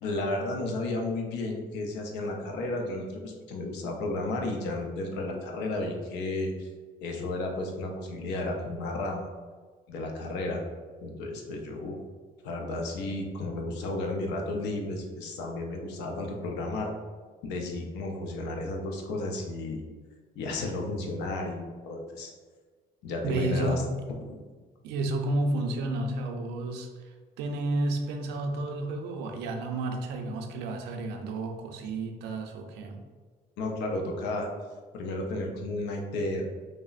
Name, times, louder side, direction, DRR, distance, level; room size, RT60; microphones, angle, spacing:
voice 1, 0.0-6.7 7.0-9.3 9.9-10.6 11.0-12.0 12.4-16.9 17.4-19.8 20.4-22.3 23.0-23.8 24.3-24.4 33.6-34.5 34.9-36.5, left 2 dB, 90° left, 2 dB, 0.5 m, -33 dB
voice 2, 23.2-23.8 24.8-33.0, right 2 dB, 85° right, 4 dB, 0.4 m, -31 dB
3.2 x 2.0 x 2.4 m, 1.5 s
cardioid pair, 110°, 17 cm